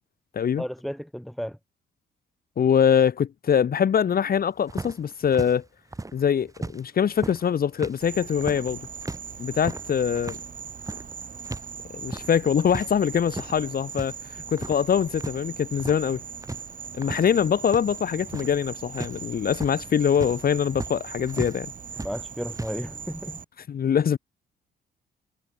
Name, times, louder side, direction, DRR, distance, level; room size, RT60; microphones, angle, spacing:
voice 1, 0.6-1.6 22.0-23.4, equal, ahead, 4.6 m, -33 dB
voice 2, 2.6-5.6 6.1-8.8 9.4-10.4 11.9-14.1 14.5-16.2 16.9-21.7 23.7-24.2, left 8 dB, 50° left, 1.4 m, -23 dB
sound 1, 4.7-6.8 7.1-11.7 11.9-12.9 13.2-14.1 14.4-15.4 15.6-16.1 16.4-21.6 21.9-22.8, right 2 dB, 15° right, 3.1 m, -36 dB
Insect, 8.0-23.4, right 6 dB, 40° right, 3.6 m, -40 dB
cardioid pair, 90°, 20 cm